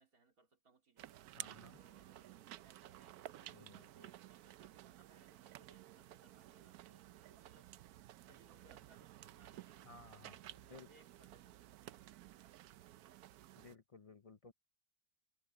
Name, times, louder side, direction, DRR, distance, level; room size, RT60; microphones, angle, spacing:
voice 1, 0.0-1.2 1.7-7.7 8.2-9.9 10.2-11.7, right 3 dB, 60° right, 3.9 m, -69 dB
sound 1, 1.0-13.7, right 13 dB, 75° right, 1.1 m, -55 dB
voice 2, 1.4-1.8 3.5-3.8 9.8-10.4 10.7-10.9 13.6-14.5, left 4 dB, 55° left, 0.4 m, -58 dB
omnidirectional pair, 1.7 m